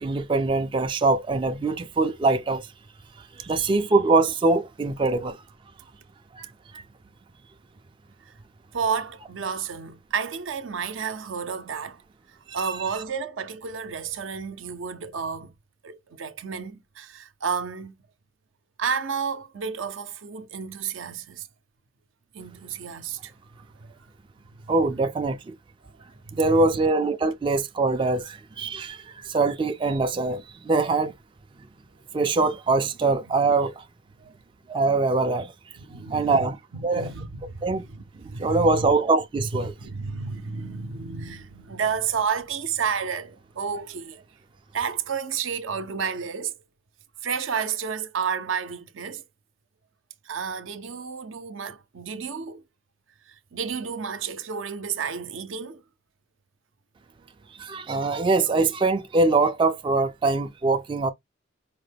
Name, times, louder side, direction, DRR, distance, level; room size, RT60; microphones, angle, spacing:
voice 1, 0.0-2.7 3.4-5.4 6.4-6.5 6.7-6.8 24.7-25.6 26.3-31.1 32.1-33.8 34.7-35.5 36.1-36.6 36.8-37.1 37.6-37.8 38.4-39.7 57.6-61.1, right 3 dB, 25° right, 0.3 m, -23 dB
voice 2, 8.7-12.0 12.3-15.5 15.8-17.9 18.8-21.5 22.3-23.3 23.8-24.0 26.3-26.7 34.2-34.3 35.8-38.9 39.5-44.2 44.7-46.5 47.2-49.2 50.2-52.6 53.3-55.8, right 6 dB, 75° right, 0.6 m, -31 dB
4.9 x 2.1 x 3.3 m
head